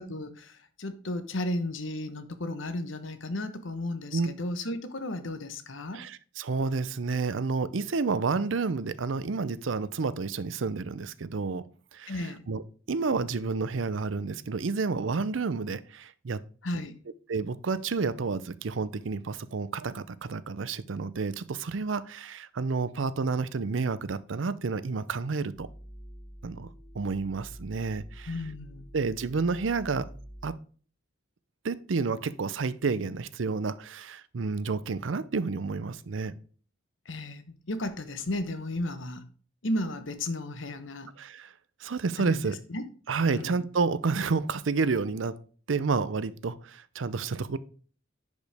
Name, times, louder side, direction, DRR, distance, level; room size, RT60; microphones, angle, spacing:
voice 1, 0.0-6.0 12.1-12.4 16.6-16.9 28.3-28.9 37.0-39.2 39.6-41.1 42.2-42.4 42.7-42.8 43.3-43.6, left 1 dB, 75° left, 1.0 m, -34 dB
voice 2, 5.9-11.6 11.9-12.6 12.9-16.4 17.3-25.7 26.4-26.7 26.9-28.3 28.9-30.1 30.4-30.6 31.6-36.4 41.2-41.5 41.8-42.6 43.1-45.4 45.7-47.6, right 4 dB, 70° right, 0.6 m, -30 dB
sound 1, 25.5-30.5, equal, 30° left, 3.1 m, -47 dB
10.5 x 5.2 x 3.4 m
head